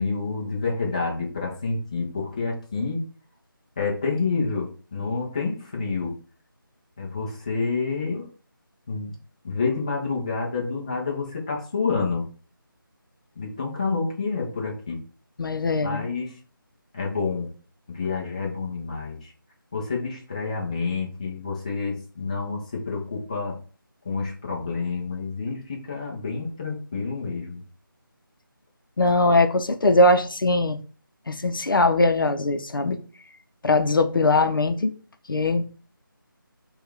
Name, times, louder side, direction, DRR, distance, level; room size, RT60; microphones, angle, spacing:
voice 1, 0.0-3.0 3.8-6.2 7.0-8.3 8.9-9.2 9.4-12.3 13.4-15.0 15.8-16.3 16.9-17.5 17.9-19.3 19.7-23.6 24.0-27.6, left 4 dB, 20° left, 0.5 m, -28 dB
voice 2, 15.4-16.1 29.0-30.8 31.3-33.0 33.6-34.9 35.3-35.6, left 2 dB, 70° left, 0.6 m, -21 dB
4.3 x 2.3 x 3.3 m
figure-of-eight pair, 165°, 12 cm